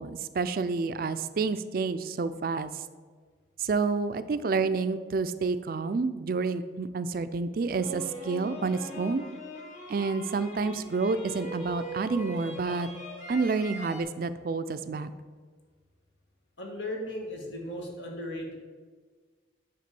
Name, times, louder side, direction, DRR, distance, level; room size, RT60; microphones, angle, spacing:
voice 1, 0.0-2.7 3.6-9.2 9.9-12.9 13.3-15.1, right 4 dB, 50° right, 12 dB, 0.4 m, -29 dB
sound 1, 7.7-14.0, equal, 40° left, 1.3 m, -41 dB
voice 2, 16.6-18.5, left 1 dB, 80° left, 0 dB, 1.7 m, -36 dB
9.4 x 3.6 x 6.8 m, 1.5 s
head